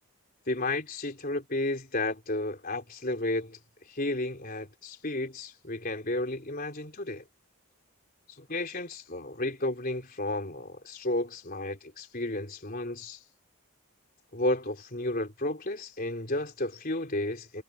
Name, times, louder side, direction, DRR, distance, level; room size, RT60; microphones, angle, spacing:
voice 1, 0.5-3.6 3.9-7.2 8.4-13.2 14.3-17.6, left 2 dB, 40° left, 3.9 m, -32 dB
head